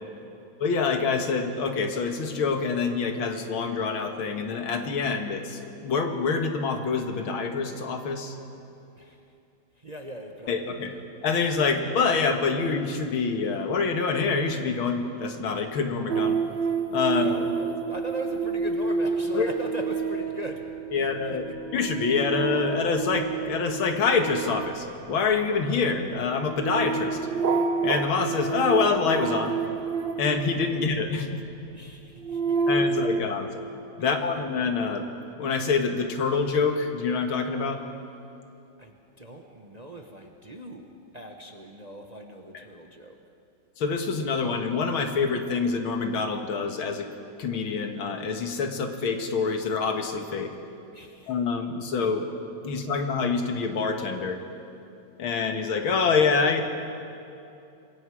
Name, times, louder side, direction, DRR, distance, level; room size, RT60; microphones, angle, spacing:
voice 1, 0.6-8.4 10.5-10.9 11.2-16.4 16.9-17.5 19.3-19.5 20.9-21.5 21.7-27.2 27.8-29.6 30.2-31.4 32.7-33.6 34.0-35.1 35.4-37.8 42.5-42.6 43.8-47.1 47.4-50.5 51.3-52.3 52.6-54.4 55.2-56.6, left 5 dB, 90° left, 5 dB, 2.4 m, -26 dB
voice 2, 9.8-11.0 17.1-20.7 20.9-21.1 30.7-30.8 31.7-32.6 32.8-32.9 34.0-34.1 38.8-43.2 50.9-51.3, right 1 dB, 25° right, 2 dB, 1.0 m, -40 dB
sound 1, 16.1-31.2 31.9-33.2, right 5 dB, 70° right, 1.7 m, -29 dB
26.0 x 22.5 x 4.9 m, 2.7 s
omnidirectional pair, 2.2 m